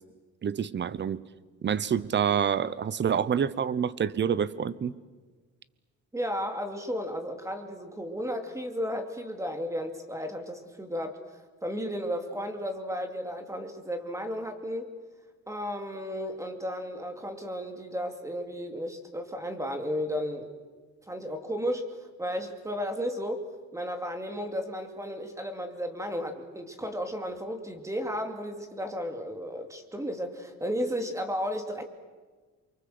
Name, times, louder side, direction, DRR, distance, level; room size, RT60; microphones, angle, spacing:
voice 1, 0.4-1.2 1.6-4.9, right 8 dB, 40° right, 18 dB, 0.9 m, -27 dB
voice 2, 6.1-11.2 11.6-14.9 15.5-20.5 21.1-21.8 22.2-23.4 23.7-31.8, equal, 10° right, 6 dB, 2.5 m, -33 dB
28.5 x 24.0 x 7.8 m, 1.4 s
cardioid pair, 140°, 30 cm